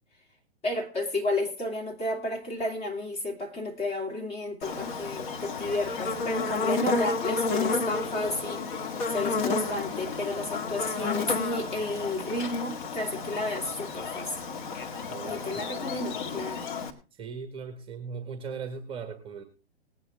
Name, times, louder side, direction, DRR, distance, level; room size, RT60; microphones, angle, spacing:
voice 1, 0.6-14.4 15.3-16.6, left 1 dB, 20° left, 2.8 m, -32 dB
Buzz, 4.6-16.9, left 4 dB, 50° left, 2.0 m, -31 dB
voice 2, 15.1-15.9 17.1-19.4, right 5 dB, 15° right, 1.5 m, -39 dB
19.5 x 9.4 x 3.5 m
hypercardioid pair, 130°, 32 cm